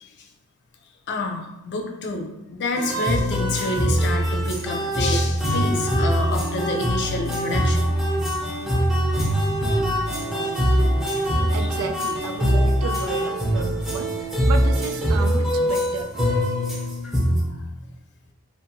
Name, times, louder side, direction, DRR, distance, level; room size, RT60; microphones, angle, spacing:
voice 1, 1.1-7.9 10.3-10.5 11.6-11.7, left 2 dB, 55° left, 2 dB, 0.4 m, -28 dB
sound 1, 2.7-17.4, equal, ahead, 0.5 m, -22 dB
voice 2, 11.5-14.2 14.5-16.2, right 5 dB, 80° right, 7 dB, 0.3 m, -32 dB
2.5 x 2.5 x 2.6 m, 0.98 s
head